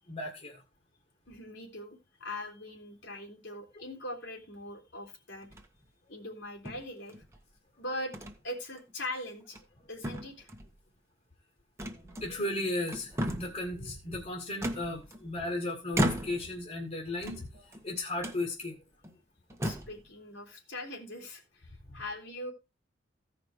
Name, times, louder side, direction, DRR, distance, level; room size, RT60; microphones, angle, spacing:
voice 1, 0.1-0.6 11.9-18.8, left 2 dB, 35° left, 1.8 m, -35 dB
voice 2, 1.3-5.5 6.1-7.2 7.8-8.1 8.4-9.6 9.9-10.5 19.6-22.5, left 1 dB, 75° left, 3.2 m, -41 dB
sound 1, 5.4-5.9 6.7-7.4 8.1-8.4 8.8-8.9 9.4-9.8 10.0-10.7 11.8-12.5 12.9-13.6 14.6-15.4 15.9-16.6 17.1-17.8 18.2-18.4 19.0-19.1 19.5-20.0, equal, 15° right, 1.3 m, -35 dB
15.5 x 5.2 x 4.7 m
head